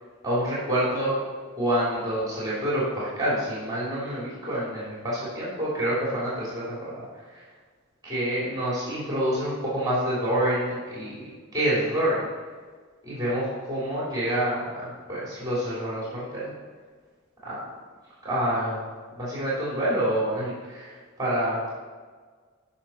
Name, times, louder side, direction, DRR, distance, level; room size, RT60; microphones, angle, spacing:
voice 1, 0.2-1.2 1.6-7.4 8.0-12.3 13.0-16.5 17.4-17.6 18.2-18.9 19.1-21.7, right 1 dB, 20° right, -8 dB, 3.0 m, -27 dB
12.5 x 5.8 x 4.3 m, 1.5 s
head